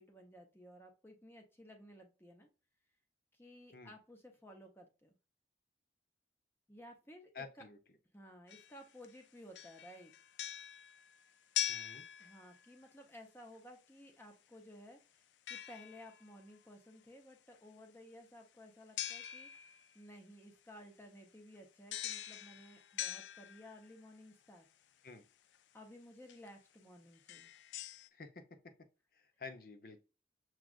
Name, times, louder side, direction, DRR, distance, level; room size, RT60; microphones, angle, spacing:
voice 1, 0.0-2.5 3.3-5.1 6.7-7.6 8.1-10.1 12.2-24.7 25.7-27.5, equal, 15° left, 3 dB, 0.7 m, -56 dB
voice 2, 7.3-7.8 11.7-12.1 25.0-25.3 28.1-28.7 29.1-30.0, left 4 dB, 55° left, 7 dB, 0.6 m, -50 dB
sound 1, 8.5-9.2 9.5-12.8 15.5-16.3 19.0-19.9 21.9-24.0 25.5-25.6 26.3-26.5 27.1-28.1, left 12 dB, 85° left, 0.3 m, -43 dB
6.1 x 2.4 x 2.4 m, 0.32 s
head